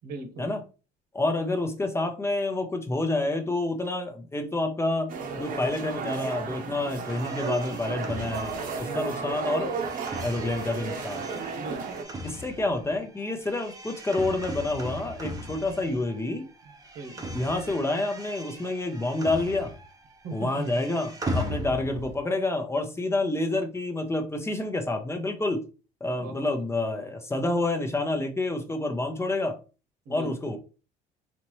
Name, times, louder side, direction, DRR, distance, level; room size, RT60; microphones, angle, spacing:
voice 1, 0.0-0.6 8.8-9.4 11.6-12.1 16.9-17.5 20.2-20.8 26.1-27.1 30.0-30.6, right 2 dB, 75° right, 1.3 m, -40 dB
voice 2, 1.1-5.1 5.4-9.7 10.2-11.3 12.2-16.4 17.3-19.7 20.3-25.6 26.0-29.6 30.1-30.6, left 2 dB, 15° left, 0.6 m, -28 dB
sound 1, 5.1-12.0, right 5 dB, 55° right, 0.9 m, -33 dB
sound 2, 7.0-16.3 16.6-20.0 20.3-22.2, equal, 20° right, 0.9 m, -38 dB
4.2 x 2.9 x 3.1 m
cardioid pair, 110°, 17 cm